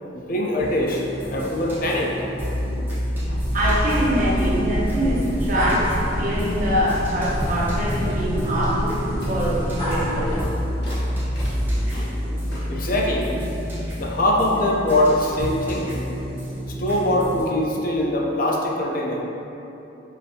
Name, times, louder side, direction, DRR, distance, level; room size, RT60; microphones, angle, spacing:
voice 1, 0.0-2.6 2.9-3.0 3.3-3.4 12.7-13.3 14.0-15.9 16.8-19.2, left 1 dB, 50° left, -1 dB, 0.5 m, -23 dB
sound 1, 0.6-17.4, equal, 10° right, 0.9 m, -29 dB
sound 2, 3.2-10.5, equal, 30° left, 1.5 m, -27 dB
voice 2, 3.5-10.4, equal, 45° right, -7 dB, 0.8 m, -24 dB
sound 3, 5.9-7.1 7.4-7.8 8.0-8.3 8.6-12.9, left 1 dB, 65° left, 1.2 m, -44 dB
5.0 x 2.6 x 2.7 m, 3.0 s
head